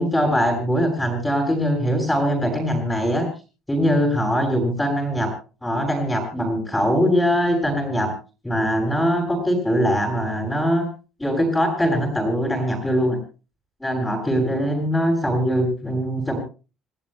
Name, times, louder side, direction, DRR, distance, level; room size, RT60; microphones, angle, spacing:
voice 1, 0.0-3.3 3.7-5.3 5.6-8.1 8.4-10.9 11.2-13.2 13.8-16.4, equal, 5° left, 0 dB, 7.3 m, -22 dB
30.0 x 18.5 x 2.2 m, 0.35 s
cardioid pair, 155°, 0 cm